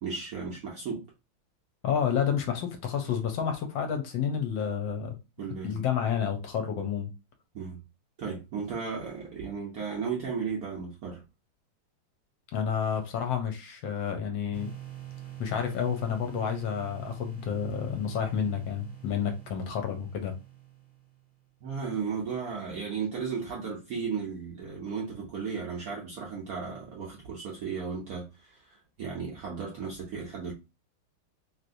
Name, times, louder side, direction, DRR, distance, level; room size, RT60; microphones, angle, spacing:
voice 1, 0.0-1.0 5.4-5.8 7.5-7.8 8.2-11.2 21.6-30.5, right 5 dB, 70° right, 0.9 m, -35 dB
voice 2, 1.8-5.1 5.6-7.1 12.5-14.7 15.4-20.3, left 7 dB, 75° left, 1.3 m, -30 dB
sound 1, 14.5-21.3, right 11 dB, ahead, 0.6 m, -45 dB
3.1 x 2.8 x 2.6 m
omnidirectional pair, 2.3 m